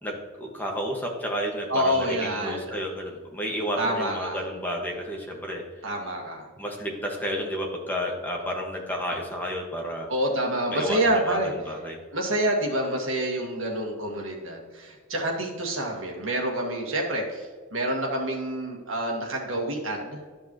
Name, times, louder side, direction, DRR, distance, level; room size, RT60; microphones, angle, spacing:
voice 1, 0.0-5.6 6.6-10.1 10.7-12.0, equal, 10° left, -1 dB, 1.5 m, -31 dB
voice 2, 1.7-2.8 3.8-4.4 5.8-6.4 10.1-11.5 12.1-17.5 17.7-20.2, right 1 dB, 70° right, 0 dB, 1.8 m, -27 dB
12.5 x 5.4 x 3.0 m, 1.5 s
head